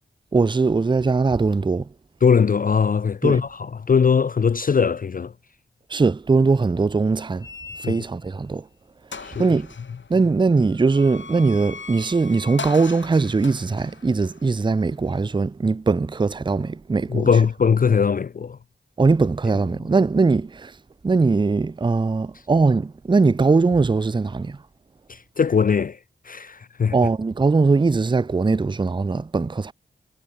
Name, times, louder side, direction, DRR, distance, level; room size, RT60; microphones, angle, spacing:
voice 1, 0.3-1.9 3.2-3.4 5.9-7.5 7.8-8.6 9.4-9.7 10.1-17.3 19.0-20.7 21.0-24.6 26.9-29.7, right 4 dB, 25° right, 0.4 m, -20 dB
voice 2, 2.2-5.3 7.8-7.9 9.2-9.5 17.1-18.6 25.1-26.0 26.3-27.0, left 6 dB, 45° left, 0.4 m, -20 dB
sound 1, 7.4-8.3 8.7-8.8 9.1-15.2, left 4 dB, 70° left, 3.2 m, -40 dB
wide cardioid pair, 60°, 20 cm